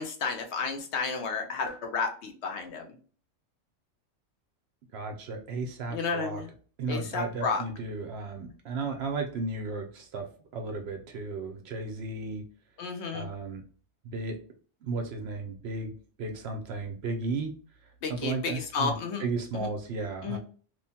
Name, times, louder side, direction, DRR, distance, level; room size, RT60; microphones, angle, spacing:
voice 1, 0.0-2.9 5.9-6.5 6.9-7.6 12.8-13.3 18.0-19.3 19.5-19.7 20.2-20.4, left 5 dB, 70° left, 4 dB, 0.8 m, -32 dB
voice 2, 4.9-6.4 6.8-10.3 10.5-12.5 13.1-13.6 14.0-14.4 14.8-17.5 18.0-20.4, right 3 dB, 65° right, 4 dB, 0.7 m, -34 dB
3.0 x 2.1 x 2.7 m, 0.41 s
omnidirectional pair, 1.3 m